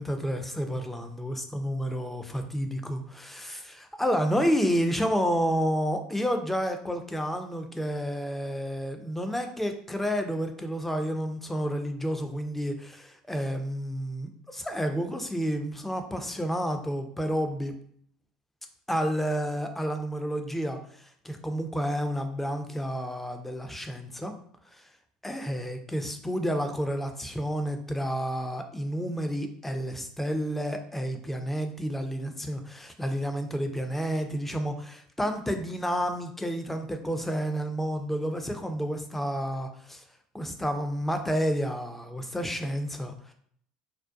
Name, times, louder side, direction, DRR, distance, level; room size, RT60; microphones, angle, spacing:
voice 1, 0.0-17.7 18.9-20.8 21.2-24.3 24.7-24.8 25.2-40.0 40.3-43.3, equal, 5° left, 6 dB, 0.4 m, -30 dB
2.4 x 2.2 x 2.4 m, 0.63 s
hypercardioid pair, 70°, 3 cm